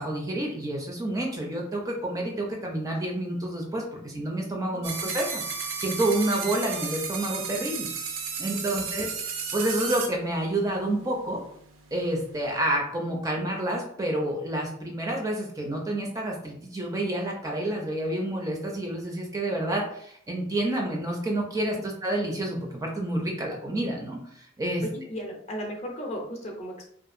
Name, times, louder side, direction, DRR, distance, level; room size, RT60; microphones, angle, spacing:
voice 1, 0.0-5.4 5.8-7.9 8.4-11.4 11.9-24.8, right 1 dB, 20° right, 0 dB, 0.4 m, -29 dB
sound 1, 4.8-10.1, right 6 dB, 85° right, 0.5 m, -33 dB
voice 2, 24.8-26.9, equal, 35° left, 0 dB, 0.5 m, -36 dB
2.7 x 2.4 x 2.4 m, 0.67 s
head